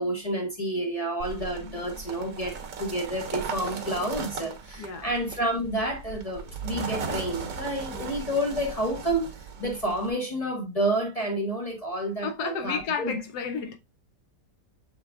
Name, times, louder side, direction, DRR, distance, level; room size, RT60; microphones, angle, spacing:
voice 1, 0.0-9.3 9.6-13.2, right 1 dB, 45° left, 0.4 m, -29 dB
sound 1, 1.2-10.1, right 5 dB, 60° right, 1.1 m, -37 dB
voice 2, 4.8-5.1 7.9-8.1 12.2-13.8, left 6 dB, 70° left, 1.0 m, -32 dB
6.3 x 3.4 x 2.3 m
omnidirectional pair, 2.0 m